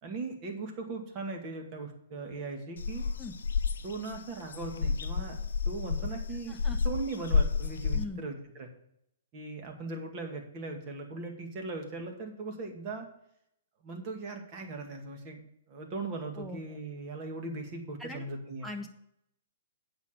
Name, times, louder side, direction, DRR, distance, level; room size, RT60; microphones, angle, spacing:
voice 1, 0.0-3.1 3.8-5.4 5.7-6.6 6.8-8.7 9.3-13.1 13.8-18.7, right 3 dB, 35° right, 3 dB, 2.2 m, -39 dB
sound 1, 2.8-8.0, left 5 dB, 70° left, 0.6 m, -30 dB
voice 2, 7.9-8.2 16.4-16.8 18.0-18.2 18.6-18.9, left 2 dB, ahead, 2 dB, 1.4 m, -40 dB
8.3 x 6.2 x 6.7 m, 0.76 s
figure-of-eight pair, 120°, 0 cm